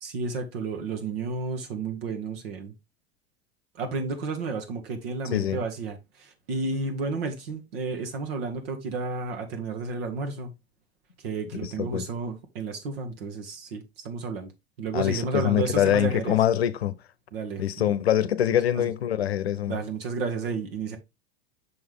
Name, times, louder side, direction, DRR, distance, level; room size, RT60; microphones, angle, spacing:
voice 1, 0.0-2.7 3.7-10.5 11.2-14.5 14.8-16.4 17.3-17.9 18.7-18.9 19.7-21.0, right 4 dB, 65° right, 1.5 m, -32 dB
voice 2, 5.3-5.6 11.5-12.1 14.9-16.9 17.6-19.8, left 11 dB, 75° left, 0.7 m, -24 dB
6.4 x 4.6 x 3.6 m
figure-of-eight pair, 85°, 31 cm